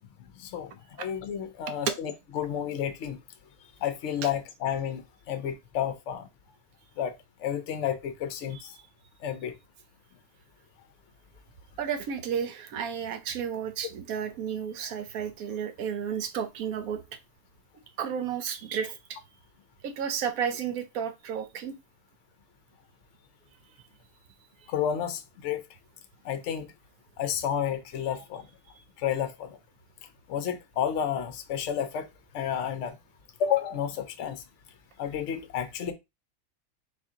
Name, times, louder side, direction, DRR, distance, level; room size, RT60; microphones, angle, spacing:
voice 1, 1.0-3.2 3.8-6.3 7.0-7.1 7.4-8.7 9.2-9.5 24.7-25.6 26.2-26.7 27.2-28.4 29.0-29.5 30.3-32.1 32.3-33.0 33.4-34.4 35.0-35.9, left 9 dB, 60° left, 0.9 m, -31 dB
voice 2, 11.8-17.0 18.0-19.2 19.8-21.7, right 8 dB, 75° right, 1.2 m, -32 dB
4.2 x 2.7 x 3.7 m
omnidirectional pair, 1.5 m